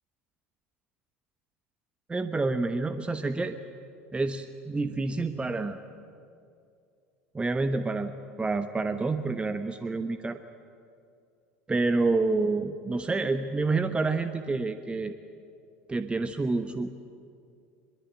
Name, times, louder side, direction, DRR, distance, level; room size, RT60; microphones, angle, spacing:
voice 1, 2.1-3.6 4.1-5.8 7.3-10.4 11.7-15.2 15.9-16.9, right 3 dB, 15° right, 10 dB, 1.1 m, -28 dB
23.0 x 22.0 x 8.9 m, 2.4 s
figure-of-eight pair, 75°, 7 cm